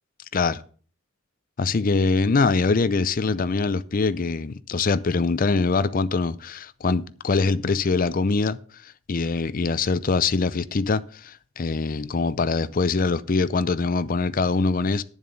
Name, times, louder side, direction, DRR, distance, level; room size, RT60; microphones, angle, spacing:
voice 1, 1.6-8.6 8.8-15.0, left 4 dB, 45° left, 0.5 m, -23 dB
10.5 x 7.2 x 5.4 m
head